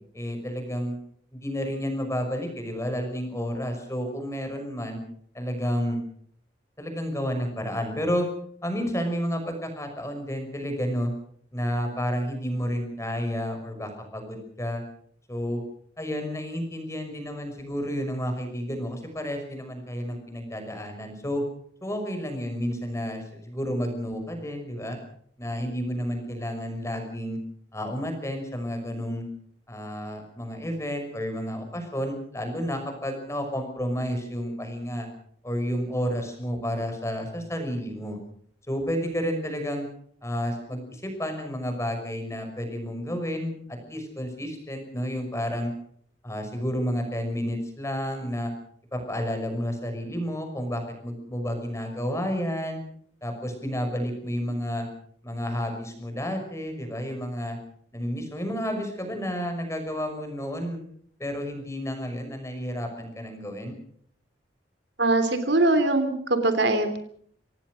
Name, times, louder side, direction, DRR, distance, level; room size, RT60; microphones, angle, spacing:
voice 1, 0.1-1.0 1.3-5.0 5.3-6.0 6.8-8.3 8.6-11.1 11.5-14.8 15.3-15.6 16.0-21.4 21.8-25.0 25.4-27.4 27.7-29.2 29.7-35.1 35.4-38.2 38.7-39.9 40.2-45.7 46.2-48.5 48.9-52.8 53.2-54.9 55.2-57.6 57.9-60.8 61.2-63.8, equal, 15° left, 5 dB, 5.7 m, -31 dB
voice 2, 65.0-67.0, right 2 dB, 70° right, 9 dB, 3.2 m, -22 dB
26.0 x 18.5 x 6.4 m, 0.62 s
head